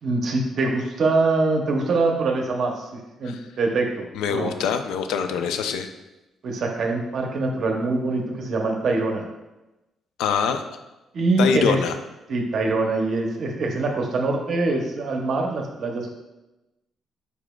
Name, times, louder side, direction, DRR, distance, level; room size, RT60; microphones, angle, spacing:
voice 1, 0.0-2.9 3.2-4.5 6.4-9.3 11.1-11.8 12.3-16.1, right 3 dB, 60° right, 2 dB, 0.6 m, -24 dB
voice 2, 4.1-5.9 10.2-10.6 11.4-11.9, left 6 dB, 90° left, 8 dB, 0.4 m, -24 dB
4.9 x 4.8 x 2.2 m, 1.0 s
cardioid pair, 90°, 0 cm